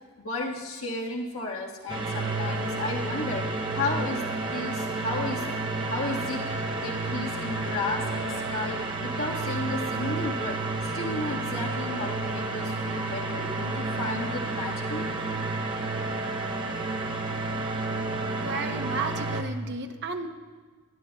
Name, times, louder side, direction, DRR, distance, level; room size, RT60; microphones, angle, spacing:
voice 1, 0.2-4.2 4.5-5.4 5.8-6.5 6.8-15.1, left 2 dB, 65° left, -2 dB, 1.5 m, -33 dB
sound 1, 1.9-19.4, right 3 dB, 20° right, 0.8 m, -31 dB
voice 2, 18.3-20.3, right 3 dB, 50° right, 6 dB, 0.8 m, -33 dB
20.0 x 11.0 x 2.3 m, 1.4 s
head